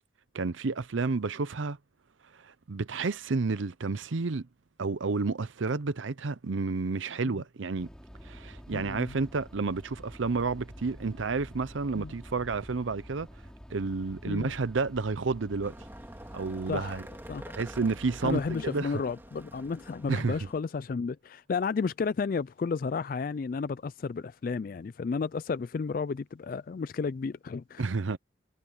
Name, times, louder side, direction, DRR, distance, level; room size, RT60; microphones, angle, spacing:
voice 1, 0.3-1.8 2.4-4.5 4.8-7.9 8.2-13.3 13.7-15.7 16.3-17.0 17.5-18.9 20.1-20.4 27.8-28.2, right 4 dB, 85° right, 0.7 m, -30 dB
sound 1, 7.8-18.7, equal, 5° left, 4.3 m, -48 dB
voice 2, 8.7-9.1 11.9-12.1 14.3-14.5 16.7-17.0 17.3-17.4 18.2-27.9, left 5 dB, 45° left, 0.3 m, -32 dB
sound 2, 15.6-20.6, right 1 dB, 10° right, 3.0 m, -48 dB
head